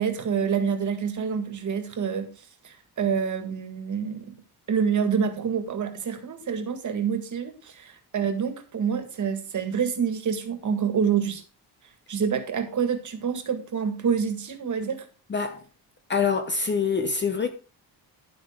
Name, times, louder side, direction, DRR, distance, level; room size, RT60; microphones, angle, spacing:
voice 1, 0.0-2.3 2.6-4.4 4.7-11.4 12.1-15.0, right 7 dB, 45° right, 1.9 m, -27 dB
voice 2, 16.1-17.5, left 5 dB, 25° left, 0.8 m, -25 dB
11.0 x 8.8 x 3.7 m
wide cardioid pair, 170°, 40 cm